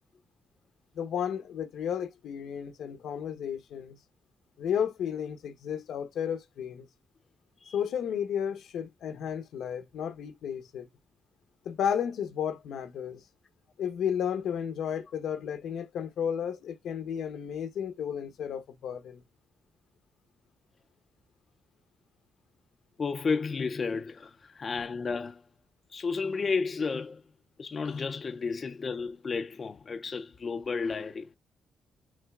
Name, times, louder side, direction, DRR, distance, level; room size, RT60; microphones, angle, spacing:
voice 1, 0.9-4.0 4.6-6.9 7.7-10.9 11.6-13.2 13.8-19.2, left 8 dB, 85° left, 0.9 m, -33 dB
voice 2, 23.0-25.4 25.9-27.2 27.6-31.3, left 4 dB, 35° left, 0.4 m, -32 dB
6.4 x 3.3 x 2.3 m
cardioid pair, 140°, 0 cm